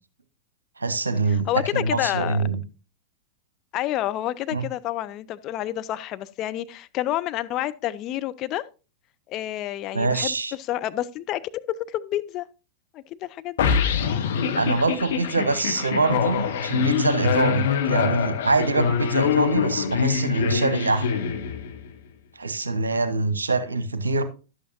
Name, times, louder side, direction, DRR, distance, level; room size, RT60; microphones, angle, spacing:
voice 1, 0.8-2.6 4.5-4.6 9.9-10.5 14.5-21.2 22.4-24.2, right 3 dB, 75° right, 0.9 m, -24 dB
voice 2, 1.3-2.4 3.7-8.6 9.3-12.5 12.9-13.7, left 14 dB, 35° left, 0.5 m, -29 dB
sound 1, 13.6-21.9, left 7 dB, 60° left, 1.0 m, -24 dB
11.5 x 8.4 x 2.7 m
figure-of-eight pair, 90°, 0 cm